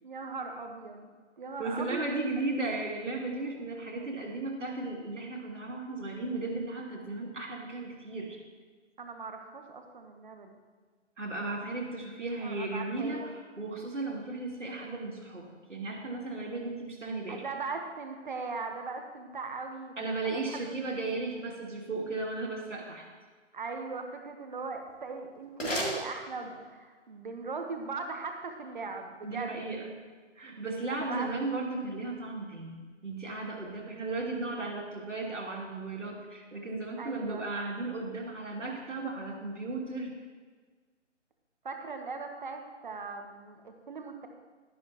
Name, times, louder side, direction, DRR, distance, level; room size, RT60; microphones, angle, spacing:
voice 1, 0.0-1.1 1.4-2.4 9.0-10.6 12.4-13.4 17.3-19.9 20.2-20.8 23.5-29.7 30.9-31.4 37.0-37.4 41.6-44.3, right 4 dB, 40° right, 5 dB, 1.1 m, -39 dB
voice 2, 1.6-8.4 11.2-17.4 20.0-23.1 29.2-29.9 30.4-32.8 33.0-40.1, right 2 dB, 75° right, -1 dB, 2.6 m, -35 dB
sound 1, 24.7-26.8, left 1 dB, 80° left, 3.3 m, -37 dB
12.0 x 11.0 x 3.0 m, 1.5 s
figure-of-eight pair, 155°, 37 cm